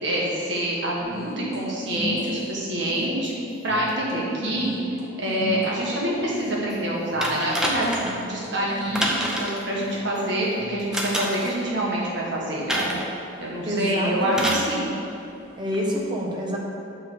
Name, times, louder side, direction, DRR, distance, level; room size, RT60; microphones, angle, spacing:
voice 1, 0.0-3.3 3.6-4.7 5.2-7.9 8.1-12.9 13.4-14.9, right 1 dB, 60° right, -5 dB, 1.7 m, -26 dB
sound 1, 1.0-11.3, left 1 dB, 15° left, 1.1 m, -37 dB
sound 2, 7.2-8.2 8.9-9.6 10.9-11.5 12.7-13.1 14.3-14.7 15.7-15.8, right 1 dB, 5° right, 0.6 m, -27 dB
voice 2, 13.7-14.6 15.6-16.6, equal, 20° right, -2 dB, 1.0 m, -27 dB
7.3 x 3.9 x 6.4 m, 2.9 s
head